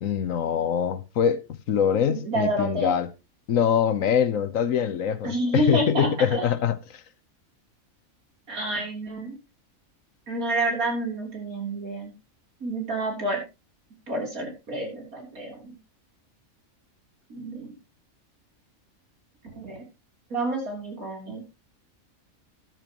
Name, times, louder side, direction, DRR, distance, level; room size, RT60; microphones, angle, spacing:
voice 1, 0.0-1.4 1.7-3.1 3.5-7.0, left 8 dB, 70° left, 1.3 m, -24 dB
voice 2, 2.1-3.0 5.2-6.5 8.5-9.4 10.3-12.1 12.6-13.4 14.1-15.8 17.3-17.7 19.5-19.8 20.3-21.4, right 1 dB, 85° right, 4.0 m, -29 dB
14.0 x 11.0 x 3.0 m
omnidirectional pair, 1.5 m